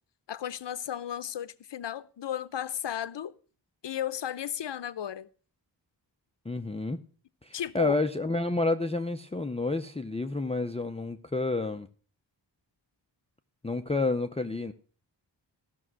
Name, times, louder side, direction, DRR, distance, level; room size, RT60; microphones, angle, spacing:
voice 1, 0.3-3.3 3.8-5.3 7.5-7.9, left 10 dB, 70° left, 0.7 m, -34 dB
voice 2, 6.5-7.0 7.4-11.9 13.6-14.7, left 2 dB, 15° left, 0.5 m, -29 dB
15.0 x 6.2 x 6.1 m
wide cardioid pair, 125°, 44 cm